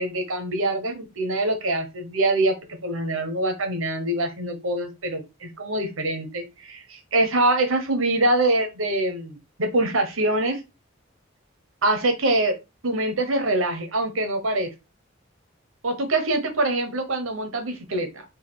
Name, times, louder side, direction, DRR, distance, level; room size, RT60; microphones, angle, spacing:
voice 1, 0.0-10.6 11.8-12.6 12.8-14.7 15.8-18.2, right 2 dB, 85° right, 1.1 m, -24 dB
4.1 x 2.4 x 4.0 m
head